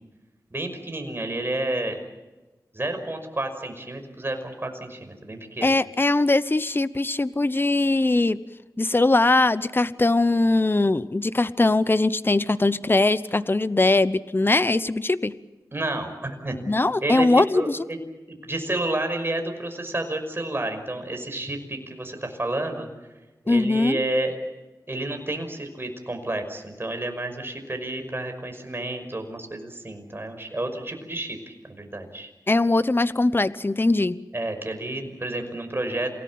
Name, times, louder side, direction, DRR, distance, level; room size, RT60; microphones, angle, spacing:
voice 1, 0.5-2.0 2.7-5.7 15.7-16.6 17.0-18.0 18.3-22.9 23.4-24.4 24.9-32.3 34.3-36.1, right 1 dB, 35° right, 5 dB, 5.6 m, -30 dB
voice 2, 5.6-8.4 8.8-15.3 16.7-17.8 23.5-24.0 32.5-34.2, left 2 dB, 30° left, 15 dB, 0.9 m, -21 dB
28.0 x 18.0 x 8.7 m, 1.1 s
wide cardioid pair, 55°, 7 cm